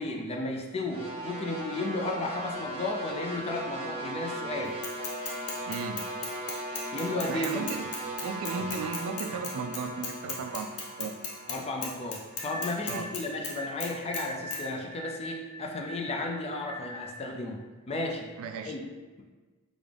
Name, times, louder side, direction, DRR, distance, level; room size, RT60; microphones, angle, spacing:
voice 1, 0.0-4.8 6.9-7.7 11.5-17.6 17.9-18.3 18.6-18.8, left 2 dB, 25° left, 2 dB, 0.4 m, -34 dB
sound 1, 0.9-13.1, right 1 dB, 25° right, 0.6 m, -38 dB
Bicycle / Mechanisms, 4.8-11.6 11.8-13.5 13.8-14.2 14.5-14.6, left 4 dB, 70° left, 0.7 m, -36 dB
voice 2, 5.7-6.0 7.3-7.9 8.2-11.2 12.9-13.1 18.4-18.8, right 5 dB, 70° right, 7 dB, 0.3 m, -36 dB
sound 2, 12.4-17.3, left 1 dB, 10° left, 0.9 m, -41 dB
3.6 x 2.4 x 3.3 m, 1.3 s
head